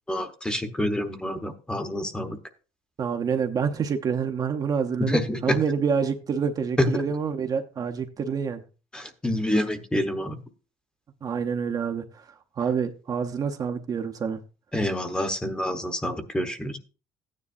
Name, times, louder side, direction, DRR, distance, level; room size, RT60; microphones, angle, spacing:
voice 1, 0.1-2.4 5.0-5.6 6.8-7.0 8.9-10.4 14.7-16.8, left 1 dB, 5° left, 7 dB, 1.0 m, -27 dB
voice 2, 3.0-8.6 11.2-12.2 12.6-14.4, right 6 dB, 30° right, 5 dB, 0.7 m, -27 dB
14.5 x 9.7 x 2.5 m, 0.35 s
cardioid pair, 155°, 12 cm